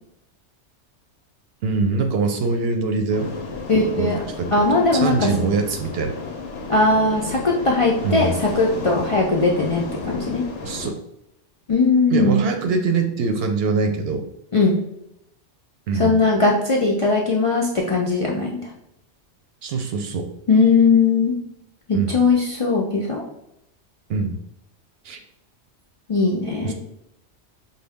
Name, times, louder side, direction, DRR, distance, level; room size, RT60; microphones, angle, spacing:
voice 1, 1.6-3.3 4.0-6.1 8.0-8.4 10.6-11.0 12.1-14.2 15.9-16.1 19.6-20.3 21.9-22.2 24.1-24.4 25.0-25.2 26.6-26.7, right 4 dB, 65° right, 6 dB, 0.7 m, -23 dB
sound 1, 3.1-10.9, left 3 dB, 85° left, 1.0 m, -32 dB
voice 2, 3.7-4.2 4.5-5.3 6.7-10.4 11.7-12.4 14.5-14.8 16.0-18.6 20.5-21.3 21.9-23.2 26.1-26.7, left 3 dB, 50° left, -3 dB, 0.4 m, -19 dB
5.1 x 2.2 x 3.4 m, 0.82 s
omnidirectional pair, 1.2 m